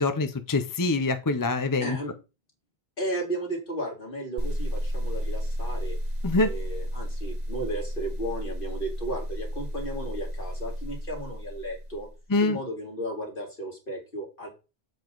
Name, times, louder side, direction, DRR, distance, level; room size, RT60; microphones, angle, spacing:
voice 1, 0.0-2.0 6.2-6.5 12.3-12.6, left 3 dB, 25° left, 9 dB, 0.6 m, -25 dB
voice 2, 1.8-2.1 3.0-6.0 6.4-12.1 12.4-14.5, right 1 dB, 60° left, 1 dB, 2.7 m, -34 dB
sound 1, 4.4-12.2, equal, 30° right, 2.2 m, -32 dB
7.7 x 7.1 x 3.9 m, 0.29 s
omnidirectional pair, 1.0 m